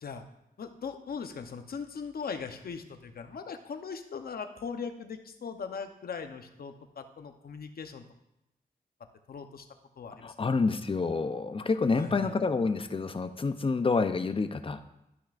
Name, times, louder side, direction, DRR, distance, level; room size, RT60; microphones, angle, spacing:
voice 1, 0.6-8.0 9.3-9.7 10.0-10.5 11.9-12.3, left 5 dB, 65° left, 7 dB, 0.8 m, -39 dB
voice 2, 10.2-14.8, left 4 dB, 35° left, 10 dB, 0.5 m, -28 dB
12.5 x 6.0 x 2.5 m, 0.88 s
wide cardioid pair, 85°, 17 cm